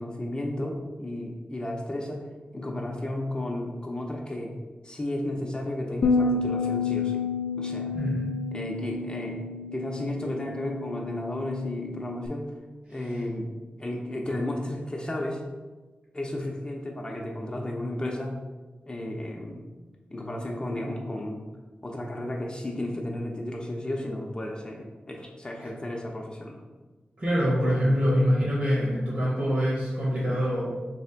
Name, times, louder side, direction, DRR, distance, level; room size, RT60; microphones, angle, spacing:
voice 1, 0.0-2.3 2.5-4.5 4.8-7.2 7.6-7.9 8.5-9.4 9.7-12.5 12.9-13.5 13.8-15.4 16.1-18.4 18.9-19.6 20.1-21.4 21.8-26.6, left 1 dB, 25° left, -1 dB, 0.6 m, -33 dB
Bass guitar, 6.0-12.3, left 4 dB, 85° left, 0.3 m, -30 dB
voice 2, 7.9-8.3 27.2-30.7, equal, 50° right, -7 dB, 1.4 m, -24 dB
3.4 x 3.1 x 4.4 m, 1.3 s
wide cardioid pair, 85°, 3 cm